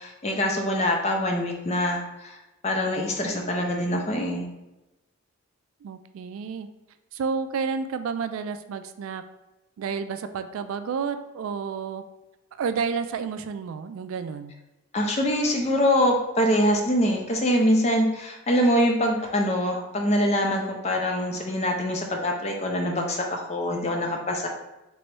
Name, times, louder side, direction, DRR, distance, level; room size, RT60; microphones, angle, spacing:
voice 1, 0.0-2.4 2.6-4.5 14.9-24.5, equal, 30° left, 2 dB, 0.5 m, -24 dB
voice 2, 5.8-6.7 7.1-9.2 9.8-12.0 12.6-14.5, right 5 dB, 75° right, 10 dB, 0.3 m, -30 dB
3.1 x 3.0 x 4.6 m, 0.99 s
head